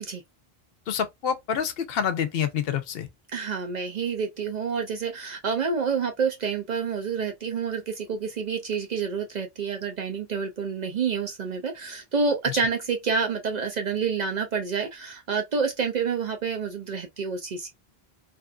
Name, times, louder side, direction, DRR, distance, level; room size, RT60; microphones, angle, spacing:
voice 1, 0.9-3.1 12.5-12.6, left 8 dB, 75° left, 0.8 m, -27 dB
voice 2, 3.3-17.7, right 5 dB, 55° right, 0.5 m, -28 dB
2.7 x 2.4 x 2.3 m
omnidirectional pair, 1.0 m